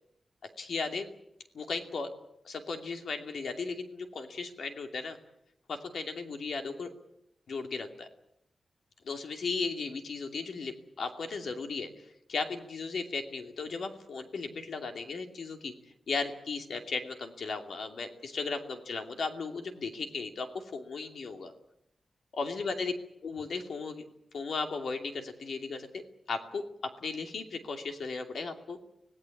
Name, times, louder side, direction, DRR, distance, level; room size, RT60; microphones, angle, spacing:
voice 1, 0.6-1.1 1.6-2.1 2.4-5.2 5.7-6.9 7.5-8.1 9.0-15.7 16.1-21.5 22.3-22.9 23.2-24.0 24.3-26.0 26.3-28.8, left 4 dB, 70° left, 5 dB, 2.6 m, -36 dB
25.5 x 18.0 x 8.5 m, 0.79 s
wide cardioid pair, 170°, 0 cm